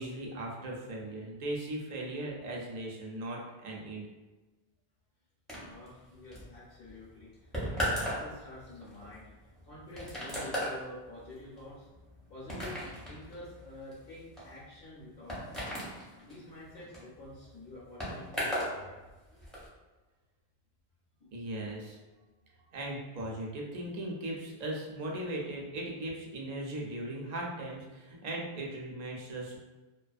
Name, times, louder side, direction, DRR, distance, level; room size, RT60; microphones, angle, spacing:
voice 1, 0.0-4.0 21.3-22.0 22.7-29.6, right 1 dB, 55° right, -2 dB, 0.5 m, -38 dB
voice 2, 5.5-9.3 9.6-11.9 12.3-15.7 16.2-18.9 21.2-21.4, left 2 dB, 65° left, -7 dB, 0.8 m, -48 dB
sound 1, 5.5-18.8 19.0-19.7, equal, ahead, 0.6 m, -38 dB
2.4 x 2.3 x 2.4 m, 1.2 s
omnidirectional pair, 1.1 m